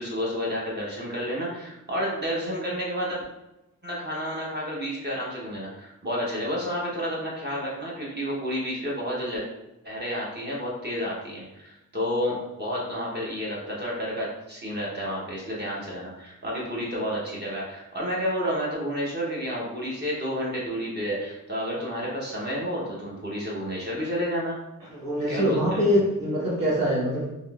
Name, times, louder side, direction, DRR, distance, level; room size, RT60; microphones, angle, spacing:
voice 1, 0.0-3.2 3.8-9.4 9.8-24.6 25.3-26.0, equal, 30° right, -5 dB, 0.8 m, -30 dB
voice 2, 24.9-27.3, equal, 75° right, -7 dB, 1.5 m, -24 dB
3.5 x 2.6 x 2.3 m, 0.94 s
wide cardioid pair, 125°, 34 cm